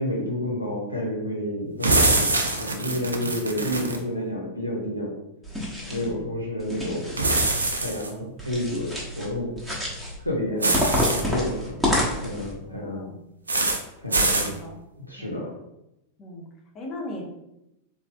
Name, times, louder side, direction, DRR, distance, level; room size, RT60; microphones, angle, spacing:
voice 1, 0.0-5.1 5.8-7.3 7.8-9.5 10.2-10.7 11.1-11.9 12.2-13.0 14.0-14.5 15.0-15.5, left 1 dB, 90° left, -3 dB, 0.8 m, -30 dB
sound 1, 1.8-4.0 7.2-8.1 10.6-11.2 13.5-13.8 14.1-14.5, right 2 dB, 75° right, 0.5 m, -23 dB
voice 2, 2.9-3.4 5.9-6.2 10.5-10.8 12.6-13.2 14.1-14.8 15.2-15.5 16.2-16.5 16.7-17.2, left 1 dB, 30° left, 0 dB, 0.9 m, -39 dB
sound 2, 5.4-6.1 6.6-7.7 8.4-9.3 9.6-10.2 10.7-12.5, left 1 dB, 5° right, 1.0 m, -28 dB
4.0 x 3.3 x 2.2 m, 0.86 s
figure-of-eight pair, 90°, 0 cm